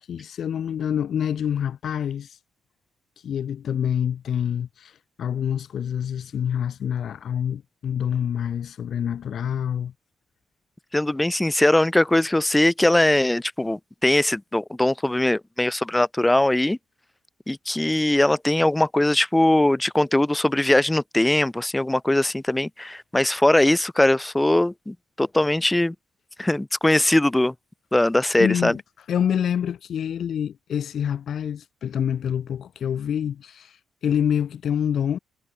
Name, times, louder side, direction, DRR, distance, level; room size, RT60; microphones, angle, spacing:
voice 1, 0.0-2.4 3.2-9.9 28.4-28.8 29.1-35.2, left 9 dB, 60° left, 1.1 m, -26 dB
voice 2, 10.9-16.8 17.5-25.9 26.4-27.5 27.9-28.8, left 1 dB, 10° left, 1.1 m, -21 dB
cardioid pair, 90°, 0 cm